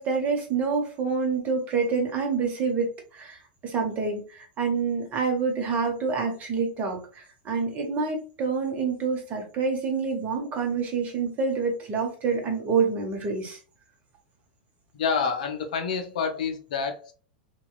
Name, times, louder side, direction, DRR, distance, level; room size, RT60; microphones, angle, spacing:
voice 1, 0.0-13.6, right 5 dB, 30° right, 2 dB, 0.9 m, -27 dB
voice 2, 14.9-17.1, left 5 dB, 65° left, 6 dB, 0.5 m, -28 dB
2.8 x 2.3 x 2.2 m, 0.37 s
figure-of-eight pair, 90°, 5 cm